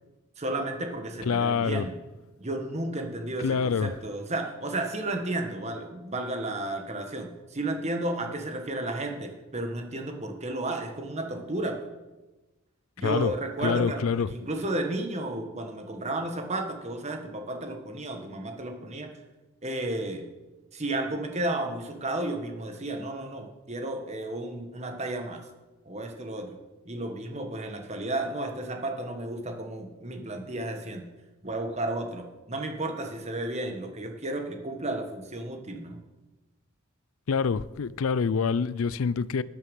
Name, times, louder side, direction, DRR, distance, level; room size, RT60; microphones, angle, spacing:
voice 1, 0.4-2.0 2.4-11.9 13.0-14.0 14.3-19.1 19.6-20.3 20.7-25.4 25.8-26.6 26.8-31.1 31.4-36.0, right 2 dB, 35° right, 1.5 m, -33 dB
voice 2, 1.2-1.9 3.4-3.9 13.0-13.3 13.6-14.3 37.3-39.4, left 5 dB, 85° left, 0.4 m, -26 dB
12.5 x 9.8 x 5.3 m
head